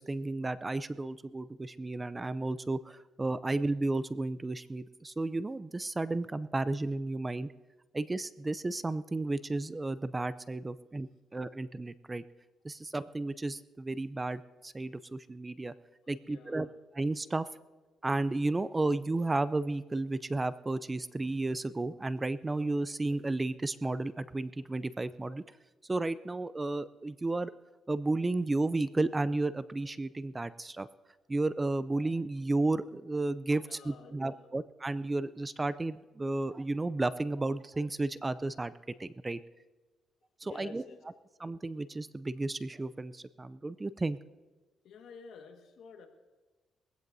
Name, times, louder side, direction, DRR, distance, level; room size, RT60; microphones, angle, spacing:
voice 1, 0.0-7.5 7.9-12.2 12.6-15.7 16.1-16.7 16.9-17.4 18.0-25.4 25.8-27.5 27.9-30.9 31.3-39.4 40.4-40.8 41.4-44.2, right 2 dB, 20° right, 15 dB, 0.4 m, -33 dB
voice 2, 16.2-16.8 33.6-34.5 40.4-41.0 44.8-46.1, left 5 dB, 75° left, 5 dB, 1.6 m, -51 dB
21.5 x 16.0 x 2.7 m, 1.2 s
cardioid pair, 90°, 0 cm